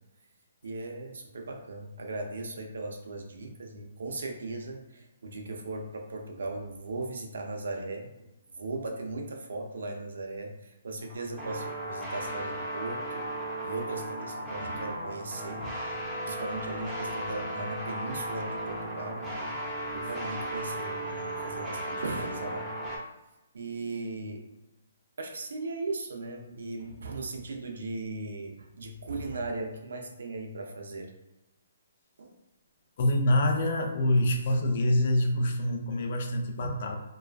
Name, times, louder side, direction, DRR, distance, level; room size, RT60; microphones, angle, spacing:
voice 1, 0.6-8.3 8.6-13.2 13.6-15.8 16.3-19.4 19.9-22.7 23.5-24.4 25.2-31.1 32.2-32.3, right 2 dB, 75° right, 3 dB, 0.5 m, -37 dB
sound 1, 11.0-23.0, right 1 dB, ahead, 0.6 m, -36 dB
voice 2, 33.0-37.0, left 1 dB, 50° left, 3 dB, 0.4 m, -26 dB
2.3 x 2.2 x 2.4 m, 0.98 s
hypercardioid pair, 160°, 0 cm